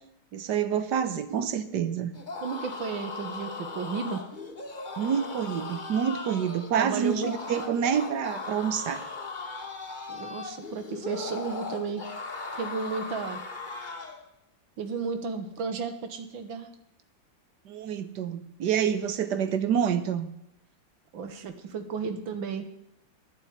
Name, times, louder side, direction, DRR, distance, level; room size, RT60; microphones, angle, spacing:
voice 1, 0.3-2.1 5.0-9.0 17.6-20.3, right 8 dB, 65° right, 12 dB, 1.6 m, -27 dB
sound 1, 2.1-14.2, left 3 dB, 25° left, 1.5 m, -38 dB
voice 2, 2.4-4.2 6.8-7.3 10.1-12.0 12.6-13.4 13.7-13.8 14.8-16.7 19.2-19.3 21.1-22.7, right 5 dB, 85° right, 8 dB, 2.0 m, -33 dB
11.0 x 8.3 x 9.6 m, 0.83 s
omnidirectional pair, 2.1 m